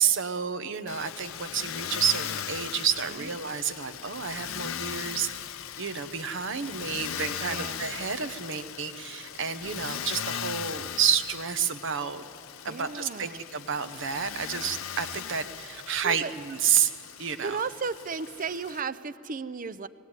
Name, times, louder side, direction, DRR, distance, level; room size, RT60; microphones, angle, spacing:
voice 1, 0.0-12.2 12.6-16.9 17.2-17.6, right 7 dB, 60° right, 10 dB, 0.9 m, -30 dB
Motor vehicle (road), 0.9-18.8, left 9 dB, 75° left, 0.6 m, -38 dB
voice 2, 7.5-7.8 12.7-13.4 16.0-16.3 17.4-19.9, right 5 dB, 40° right, 15 dB, 0.6 m, -34 dB
20.0 x 16.5 x 9.8 m, 2.7 s
head